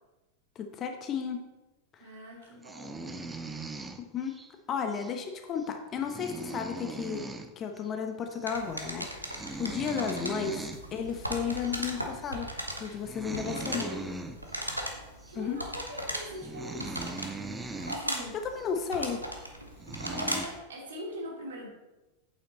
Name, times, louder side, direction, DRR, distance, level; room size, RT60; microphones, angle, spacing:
voice 1, 0.5-1.4 1.9-2.0 4.0-4.4 4.7-7.3 7.6-12.5 12.8-13.9 15.3-15.6 18.4-19.3, left 6 dB, 30° left, 5 dB, 1.1 m, -33 dB
voice 2, 2.0-3.3 12.8-13.0 13.4-14.2 15.3-17.2 17.9-18.4 20.0-21.7, equal, 65° right, -1 dB, 2.6 m, -42 dB
sound 1, 2.6-4.5 4.9-5.1 5.6-5.7 5.9-7.5 7.8-7.9 8.2-8.5 8.7-9.0 9.3-10.8 11.6-11.8 12.2-12.4 12.9-14.7 15.2-15.4 16.0-16.1 16.3-18.0 18.5-18.7 19.4-19.5 19.8-20.5, right 2 dB, 10° right, 0.7 m, -40 dB
sound 2, 8.5-20.6, right 1 dB, 85° right, 1.1 m, -38 dB
8.7 x 7.5 x 4.2 m, 1.1 s
figure-of-eight pair, 90°, 0 cm